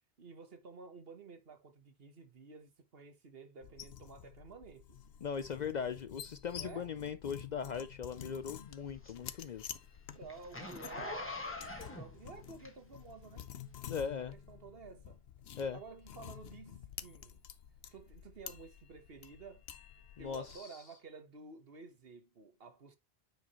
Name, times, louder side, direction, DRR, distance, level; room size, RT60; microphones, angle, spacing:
voice 1, 0.2-5.0 6.4-6.9 10.1-11.5 11.8-13.5 14.3-15.2 15.7-17.4 17.9-19.6 20.2-23.0, right 4 dB, 65° right, 1.5 m, -52 dB
Glass scraping - misc, 3.6-20.6, left 9 dB, 75° left, 0.9 m, -50 dB
voice 2, 5.2-9.7 13.9-14.3 15.6-15.8 20.2-20.8, left 6 dB, 55° left, 0.5 m, -39 dB
Zipper (clothing), 8.2-13.1 13.7-13.8, left 2 dB, 10° left, 1.6 m, -44 dB
9.2 x 4.9 x 3.0 m
omnidirectional pair, 1.1 m